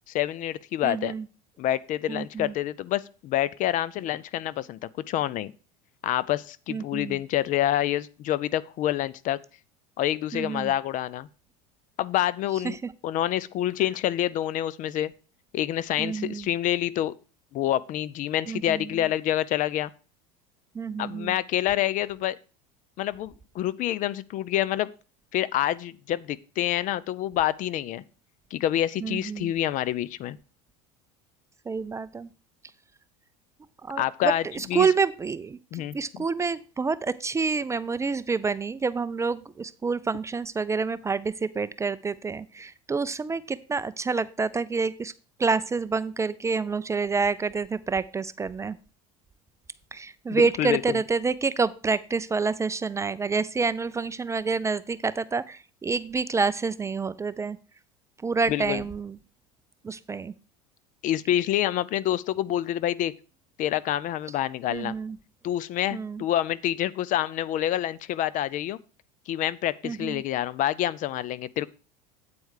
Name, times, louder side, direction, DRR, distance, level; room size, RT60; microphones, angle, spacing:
voice 1, 0.1-1.1 1.6-4.8 5.1-5.5 6.0-9.4 10.0-11.3 12.0-12.8 13.0-15.1 15.5-17.1 17.5-19.9 21.0-22.4 23.0-24.9 25.3-28.0 28.5-30.4 34.0-34.4 34.7-34.9 35.7-36.2 50.3-51.0 58.5-58.8 61.0-63.1 63.6-64.9 65.4-68.8 69.3-71.7, left 12 dB, 45° left, 19 dB, 0.5 m, -27 dB
voice 2, 0.8-1.2 2.1-2.5 6.7-7.2 10.3-10.7 12.6-12.9 16.0-16.5 18.5-19.0 20.7-21.3 29.0-29.5 31.7-32.3 33.8-45.1 45.4-48.8 49.9-57.6 58.2-59.2 59.8-60.3 64.7-65.2 65.9-66.2 69.8-70.2, right 4 dB, 15° right, 15 dB, 0.4 m, -28 dB
8.6 x 4.6 x 6.4 m, 0.36 s
supercardioid pair, 105°, 18 cm